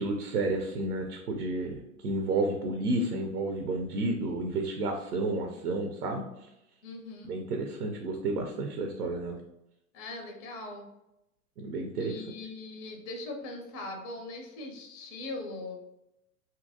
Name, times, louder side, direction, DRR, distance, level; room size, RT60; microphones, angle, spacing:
voice 1, 0.0-6.5 7.2-9.4 11.6-12.1, right 2 dB, 90° right, 3 dB, 0.6 m, -31 dB
voice 2, 6.8-7.3 9.9-10.9 12.0-15.8, left 2 dB, 30° left, 2 dB, 0.4 m, -40 dB
2.7 x 2.6 x 2.6 m, 0.87 s
hypercardioid pair, 110°, 46 cm